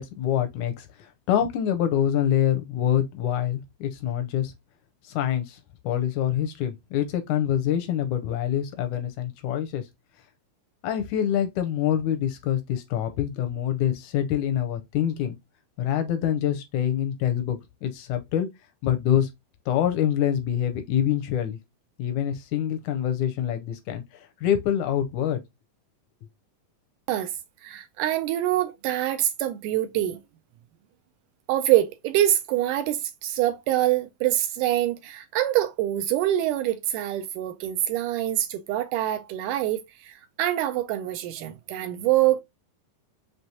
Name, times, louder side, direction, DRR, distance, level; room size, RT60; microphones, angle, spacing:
voice 1, 0.0-4.5 5.0-5.6 5.8-9.9 10.8-15.4 15.8-18.5 18.8-19.3 19.7-21.6 22.0-25.4, left 10 dB, 80° left, 1.7 m, -26 dB
voice 2, 27.6-30.2 31.5-42.4, right 13 dB, 80° right, 1.9 m, -25 dB
5.9 x 3.2 x 2.7 m
omnidirectional pair, 4.0 m